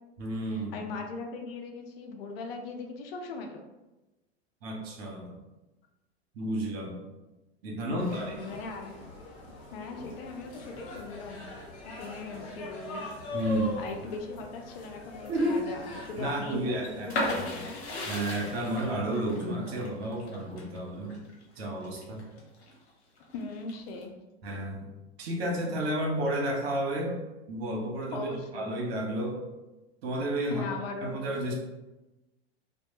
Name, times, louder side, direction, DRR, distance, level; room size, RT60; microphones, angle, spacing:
voice 1, 0.2-0.8 4.6-5.4 6.3-7.0 7.6-8.3 13.3-13.8 15.3-15.6 16.2-17.5 18.1-21.2 21.6-22.3 24.4-24.9 25.2-27.1 27.5-29.4 30.0-30.6 31.0-31.5, right 1 dB, 65° right, 0 dB, 0.8 m, -31 dB
voice 2, 0.7-3.6 7.9-9.0 9.7-11.4 11.8-13.0 13.8-17.8 23.3-24.1 28.1-28.7 30.5-31.1, left 3 dB, 65° left, 3 dB, 0.5 m, -39 dB
sound 1, 8.0-19.0, left 2 dB, 45° left, 1.0 m, -42 dB
sound 2, 17.1-22.7 23.2-24.0, left 2 dB, 85° left, 0.8 m, -35 dB
2.1 x 2.1 x 2.9 m, 1.1 s
hypercardioid pair, 95°, 33 cm